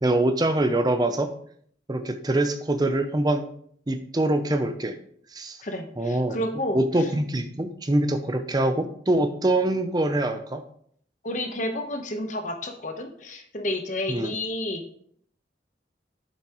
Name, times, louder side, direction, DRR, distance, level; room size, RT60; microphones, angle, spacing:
voice 1, 0.0-1.3 1.9-3.5 3.9-5.0 5.3-5.6 6.0-6.4 6.7-10.6 14.1-14.3, right 1 dB, 20° right, 8 dB, 0.5 m, -24 dB
voice 2, 5.6-6.8 11.2-14.8, left 1 dB, 40° left, 5 dB, 1.0 m, -30 dB
8.0 x 7.2 x 3.0 m, 0.62 s
head